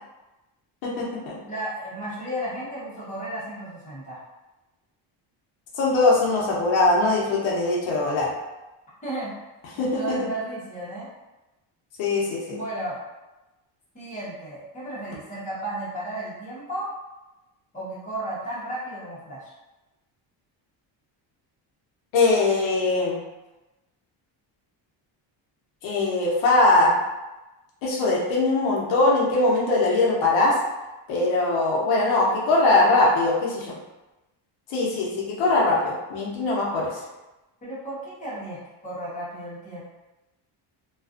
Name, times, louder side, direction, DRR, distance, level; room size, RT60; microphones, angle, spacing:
voice 1, 0.8-1.4 5.7-8.3 9.8-10.3 12.0-12.6 22.1-23.2 25.8-27.0 27.8-30.6 31.1-33.8 34.7-37.0, left 2 dB, 75° left, -4 dB, 0.8 m, -21 dB
voice 2, 1.5-4.2 9.0-9.3 9.8-11.1 12.5-13.0 13.9-16.9 17.7-19.5 37.6-38.6 38.8-39.8, right 1 dB, 15° left, -9 dB, 0.8 m, -33 dB
2.4 x 2.3 x 2.4 m, 1.0 s
cardioid pair, 165°, 46 cm